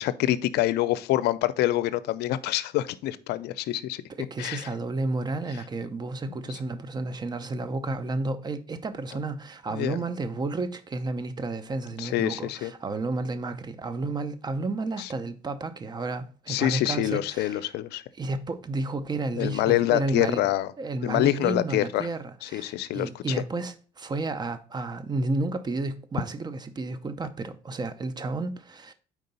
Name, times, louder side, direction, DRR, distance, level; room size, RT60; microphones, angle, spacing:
voice 1, 0.0-4.0 4.4-4.7 6.3-6.4 9.7-10.0 12.0-12.7 15.0-15.1 16.5-18.0 19.4-20.7 21.0-22.1 22.4-23.4, left 14 dB, 75° left, 0.5 m, -26 dB
voice 2, 4.2-17.6 18.2-20.4 20.8-28.9, right 3 dB, 25° right, 0.6 m, -31 dB
4.7 x 3.8 x 5.3 m
cardioid pair, 110°, 17 cm